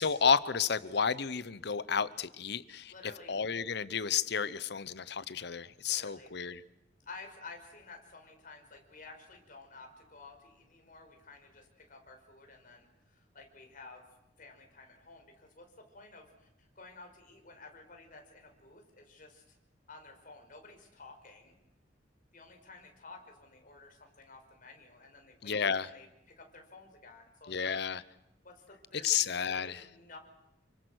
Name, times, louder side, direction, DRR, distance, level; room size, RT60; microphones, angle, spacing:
voice 1, 0.0-2.9 3.3-6.6 25.4-25.9 27.5-28.0 29.0-29.8, left 6 dB, 65° left, 17 dB, 0.9 m, -31 dB
voice 2, 2.9-3.3 5.9-6.3 7.1-14.0 14.4-19.6 19.9-21.5 22.3-27.8 28.4-30.2, left 3 dB, 50° left, 3 dB, 5.3 m, -52 dB
29.0 x 25.0 x 6.4 m, 0.92 s
head